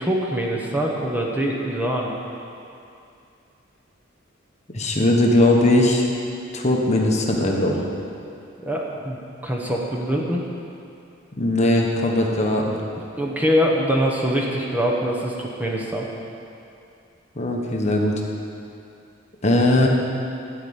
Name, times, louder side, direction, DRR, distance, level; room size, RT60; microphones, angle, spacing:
voice 1, 0.0-2.1 8.6-10.4 13.2-16.1, equal, 10° right, -2 dB, 1.1 m, -23 dB
voice 2, 4.7-6.1 6.5-7.9 11.3-12.7 17.3-18.1 19.4-19.9, left 1 dB, 35° left, 0 dB, 1.1 m, -19 dB
13.0 x 4.9 x 8.7 m, 2.6 s
head